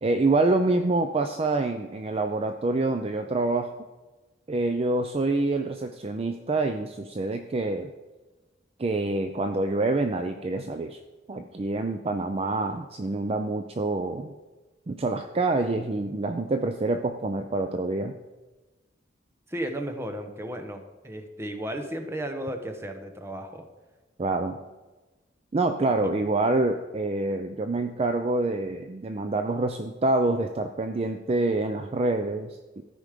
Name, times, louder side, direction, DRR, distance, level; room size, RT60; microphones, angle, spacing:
voice 1, 0.0-3.7 4.5-7.9 8.8-11.0 11.3-14.3 14.9-18.1 24.2-24.6 25.5-32.8, right 2 dB, 30° right, 6 dB, 0.4 m, -26 dB
voice 2, 19.5-23.6 26.0-26.1, right 1 dB, 15° right, 5 dB, 0.9 m, -34 dB
13.5 x 5.2 x 5.0 m, 1.2 s
head